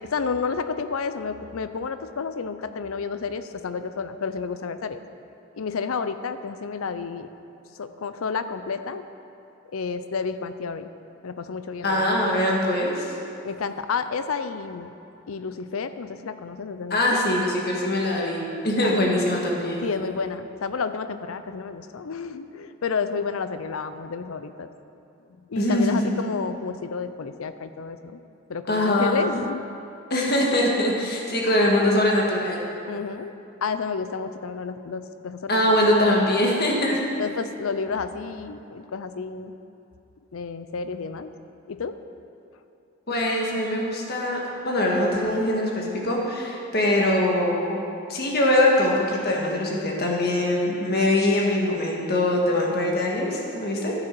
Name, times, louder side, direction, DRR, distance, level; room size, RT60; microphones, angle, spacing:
voice 1, 0.0-5.0 5.6-7.3 7.8-9.0 9.7-10.9 11.2-12.0 13.4-14.9 15.3-17.2 18.8-19.0 19.8-24.7 25.5-28.2 28.5-29.7 32.9-35.9 37.2-39.5 40.3-41.3 41.7-41.9, left 5 dB, 75° left, 11 dB, 0.5 m, -30 dB
voice 2, 11.8-13.1 16.9-19.9 25.6-26.2 28.7-29.2 30.1-32.6 35.5-37.0 43.1-47.8 48.1-53.9, left 1 dB, 45° left, -2 dB, 1.6 m, -22 dB
13.5 x 7.7 x 4.6 m, 2.7 s
head